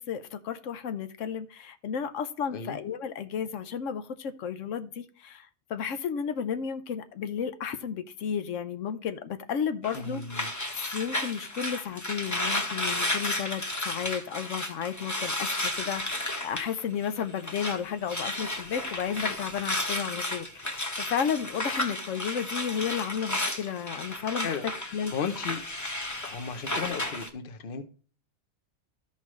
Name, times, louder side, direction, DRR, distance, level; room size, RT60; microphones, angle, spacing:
voice 1, 0.0-10.2 10.7-24.6 24.9-25.1, left 7 dB, 90° left, 1.1 m, -33 dB
sound 1, 9.8-17.8 18.0-27.3, left 1 dB, 15° left, 0.9 m, -33 dB
voice 2, 9.9-10.5 24.4-25.6 26.2-27.8, left 6 dB, 50° left, 1.0 m, -35 dB
13.0 x 5.7 x 3.1 m
omnidirectional pair, 1.3 m